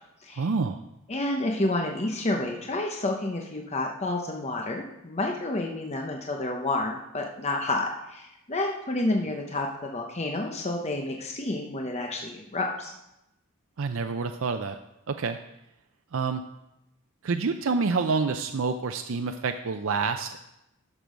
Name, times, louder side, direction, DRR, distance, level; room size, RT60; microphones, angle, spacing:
voice 1, 0.3-0.8 13.8-14.8 15.1-15.4 16.1-16.4 17.2-20.4, right 4 dB, 65° right, 7 dB, 0.5 m, -27 dB
voice 2, 1.1-12.9, left 2 dB, 30° left, 2 dB, 0.8 m, -29 dB
12.0 x 6.1 x 5.1 m, 0.89 s
head